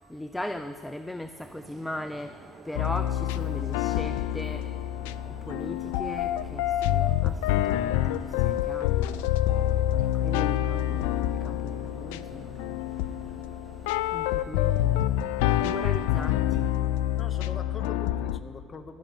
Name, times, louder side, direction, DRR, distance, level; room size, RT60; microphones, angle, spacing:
voice 1, 0.1-4.7 5.4-9.2 9.7-12.8 14.0-16.7, left 1 dB, 5° left, 10 dB, 0.5 m, -39 dB
sound 1, 1.4-14.4, right 4 dB, 40° right, 1.4 m, -50 dB
sound 2, 2.8-18.4, left 13 dB, 85° left, 0.3 m, -27 dB
voice 2, 17.2-19.0, left 5 dB, 35° left, 10 dB, 1.0 m, -43 dB
15.0 x 6.3 x 9.0 m, 2.4 s
supercardioid pair, 70°, 0 cm